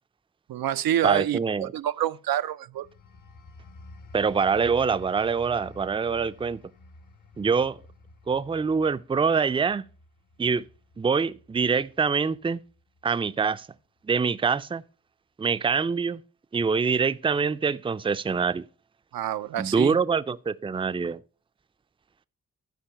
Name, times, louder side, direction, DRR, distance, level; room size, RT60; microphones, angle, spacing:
voice 1, 0.5-2.9 19.1-20.0, right 11 dB, 80° right, 0.5 m, -27 dB
voice 2, 1.0-1.7 4.1-6.6 7.4-7.8 8.3-9.8 10.4-10.6 11.0-12.6 13.0-13.7 14.0-14.8 15.4-16.2 16.5-18.6 19.6-21.2, right 5 dB, 15° right, 0.4 m, -25 dB
sound 1, 2.7-13.1 13.5-13.8, left 2 dB, 65° left, 1.0 m, -50 dB
12.0 x 4.6 x 5.7 m
cardioid pair, 55°, 35 cm